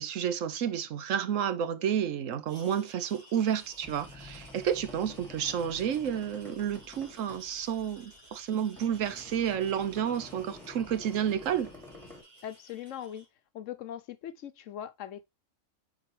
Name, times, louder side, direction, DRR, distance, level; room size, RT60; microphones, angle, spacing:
voice 1, 0.0-11.7, right 9 dB, 70° right, 1.0 m, -30 dB
sound 1, 2.5-13.3, right 2 dB, 30° right, 1.6 m, -56 dB
sound 2, 3.6-12.2, left 2 dB, ahead, 2.4 m, -49 dB
voice 2, 12.4-13.3 13.5-15.2, left 10 dB, 70° left, 0.9 m, -40 dB
7.4 x 4.6 x 3.2 m
omnidirectional pair, 1.5 m